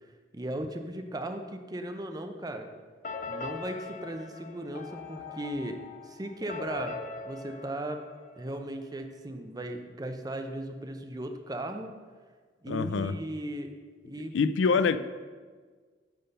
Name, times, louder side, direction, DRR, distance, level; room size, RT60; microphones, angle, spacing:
voice 1, 0.3-2.7 3.3-8.0 8.4-11.9 12.6-13.7 14.1-14.4, right 1 dB, 20° right, 6 dB, 0.6 m, -37 dB
sound 1, 3.0-8.8, left 4 dB, 45° left, 0.6 m, -41 dB
voice 2, 12.7-13.1 14.3-15.0, left 5 dB, 90° left, 13 dB, 0.4 m, -25 dB
9.5 x 3.8 x 6.7 m, 1.5 s
head